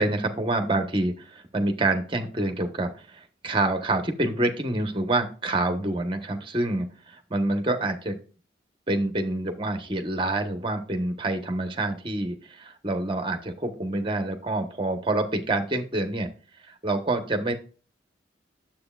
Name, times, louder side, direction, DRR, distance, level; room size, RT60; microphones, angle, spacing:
voice 1, 0.0-8.2 8.9-16.3 16.7-17.5, right 2 dB, 30° right, 6 dB, 1.1 m, -27 dB
9.6 x 7.4 x 2.4 m, 0.37 s
head